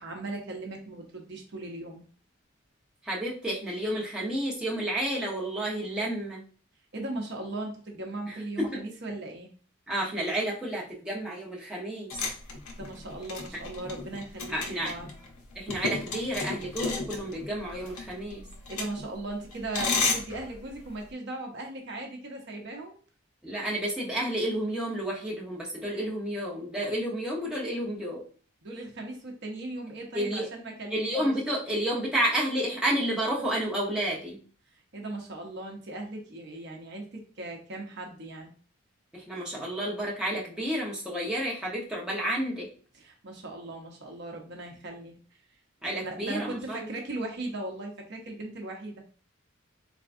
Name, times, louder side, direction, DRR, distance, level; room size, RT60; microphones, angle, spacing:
voice 1, 0.0-2.0 6.9-9.5 12.5-15.1 18.7-23.0 28.6-31.3 34.7-38.5 42.9-45.2 46.0-49.0, right 2 dB, 50° right, 2 dB, 0.8 m, -38 dB
voice 2, 3.0-6.4 8.6-8.8 9.9-12.1 14.5-14.9 15.5-18.4 23.4-28.2 30.1-30.5 30.9-34.4 39.1-42.7 45.8-46.9, right 1 dB, 5° right, -6 dB, 0.9 m, -30 dB
sound 1, 12.1-21.1, left 4 dB, 85° left, 0.9 m, -34 dB
3.7 x 3.3 x 2.6 m, 0.40 s
head